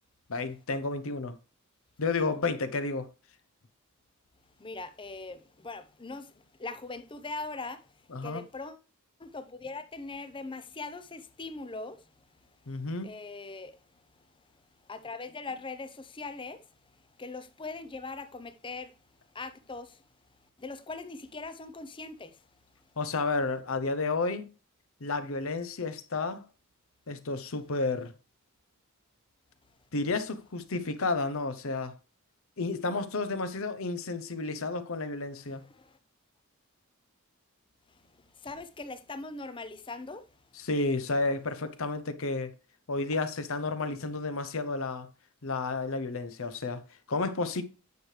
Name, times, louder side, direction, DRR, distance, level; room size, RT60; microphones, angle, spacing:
voice 1, 0.3-1.4 2.0-3.1 8.1-8.4 12.7-13.1 23.0-24.5 25.0-26.4 27.1-28.1 29.9-31.9 32.6-35.6 40.6-42.5 42.9-45.1 45.4-46.8 47.1-47.6, left 3 dB, 65° left, 0.8 m, -31 dB
voice 2, 4.6-6.3 6.6-7.8 8.2-8.8 9.2-12.0 13.0-13.7 14.9-16.6 17.2-18.9 19.3-20.0 20.6-22.3 35.5-35.9 38.4-40.2, left 3 dB, 20° left, 0.6 m, -40 dB
9.4 x 6.6 x 3.2 m
head